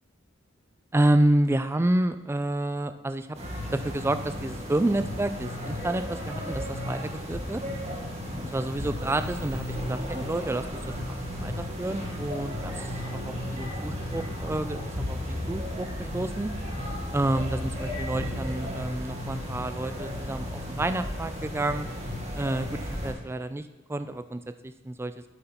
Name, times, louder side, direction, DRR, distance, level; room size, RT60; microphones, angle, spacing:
voice 1, 0.9-3.3 3.7-7.6 8.4-15.9 16.1-16.5 17.1-21.9 22.4-25.1, right 1 dB, 10° right, 10 dB, 0.3 m, -29 dB
sound 1, 3.3-23.1, left 1 dB, 35° right, 1.7 m, -34 dB
7.9 x 7.9 x 4.4 m, 1.1 s
head